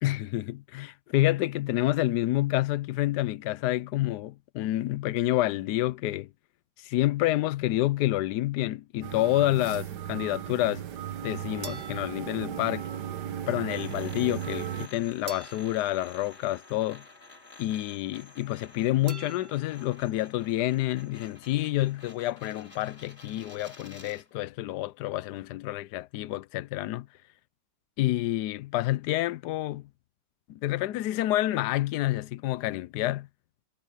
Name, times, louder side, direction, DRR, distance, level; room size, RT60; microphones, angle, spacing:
voice 1, 0.0-6.3 6.8-10.8 11.2-12.9 13.5-17.0 17.6-27.1 28.0-29.8 30.5-33.3, left 15 dB, 80° left, 1.2 m, -28 dB
sound 1, 9.0-14.9, right 10 dB, 85° right, 1.6 m, -36 dB
sound 2, 11.6-13.1 15.3-17.1 19.1-20.2, right 5 dB, 40° right, 0.7 m, -48 dB
sound 3, 13.7-24.3, left 3 dB, 40° left, 3.1 m, -51 dB
omnidirectional pair, 1.8 m